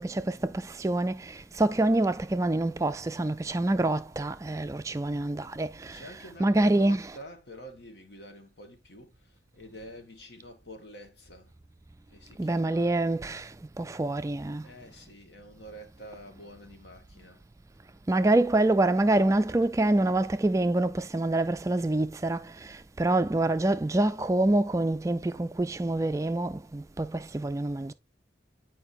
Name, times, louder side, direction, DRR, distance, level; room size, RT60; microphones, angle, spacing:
voice 1, 0.0-6.1 6.4-7.0 12.4-14.7 18.1-27.9, right 2 dB, 15° right, 0.3 m, -26 dB
voice 2, 5.9-11.5 12.1-12.9 14.6-17.4, equal, 65° left, 1.6 m, -48 dB
9.0 x 4.7 x 2.7 m
head